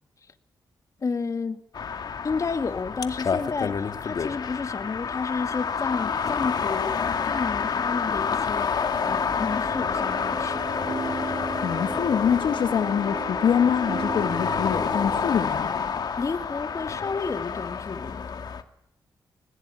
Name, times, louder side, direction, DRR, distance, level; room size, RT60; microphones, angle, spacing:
voice 1, 1.0-1.6 2.2-10.6 16.2-18.2, left 4 dB, 45° left, 2.0 m, -31 dB
sound 1, 1.7-18.6, left 6 dB, 60° left, 2.2 m, -28 dB
sound 2, 8.9-15.5, right 4 dB, 55° right, 2.9 m, -36 dB
voice 2, 11.6-15.7, left 8 dB, 80° left, 1.8 m, -25 dB
21.0 x 20.0 x 9.8 m
cardioid pair, 85°, 8 cm